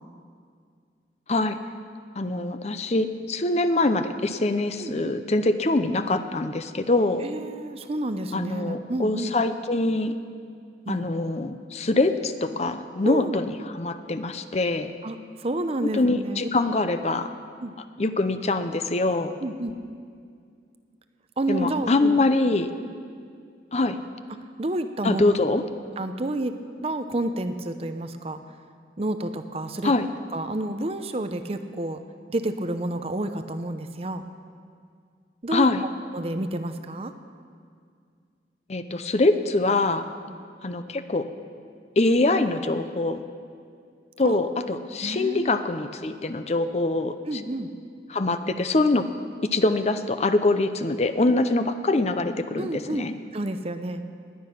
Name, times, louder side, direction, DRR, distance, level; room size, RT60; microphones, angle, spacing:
voice 1, 2.2-7.3 8.3-10.2 10.9-14.9 15.8-17.3 18.0-19.3 21.5-22.7 23.7-24.0 25.0-25.6 29.8-30.1 35.5-35.8 38.7-40.1 40.6-41.3 42.0-43.2 44.2-47.4 48.1-49.0 49.5-53.1, left 2 dB, 40° left, 10 dB, 0.6 m, -24 dB
voice 2, 4.8-5.1 7.2-9.3 10.9-11.1 13.0-13.4 15.0-16.5 17.6-17.7 19.4-19.8 21.4-22.2 24.6-25.3 26.0-26.5 26.8-28.4 29.0-29.9 30.3-32.0 32.3-34.2 35.4-35.7 36.1-37.1 40.3-40.4 44.2-44.4 45.0-45.6 47.3-47.7 52.6-54.1, right 1 dB, 35° right, 9 dB, 0.6 m, -30 dB
20.0 x 9.6 x 5.9 m, 2.2 s
head